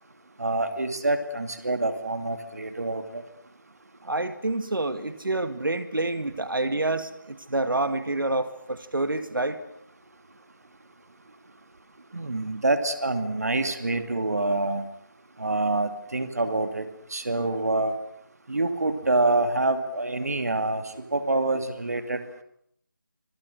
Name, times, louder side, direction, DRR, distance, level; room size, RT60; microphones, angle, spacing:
voice 1, 0.4-3.2 12.1-14.8 15.4-18.0 18.5-22.2, right 2 dB, 50° right, 8 dB, 2.4 m, -26 dB
voice 2, 4.0-9.6, right 2 dB, 80° right, 10 dB, 2.3 m, -28 dB
26.0 x 25.5 x 6.5 m, 0.70 s
figure-of-eight pair, 180°, 11 cm